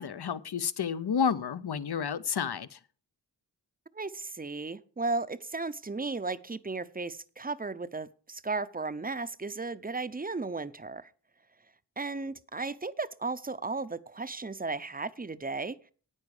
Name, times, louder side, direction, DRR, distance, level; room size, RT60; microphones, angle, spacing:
voice 1, 0.0-2.8, left 7 dB, 65° left, 0.7 m, -30 dB
voice 2, 3.9-11.1 12.0-15.8, right 3 dB, 20° right, 0.6 m, -35 dB
9.9 x 9.5 x 4.9 m
wide cardioid pair, 60°, 42 cm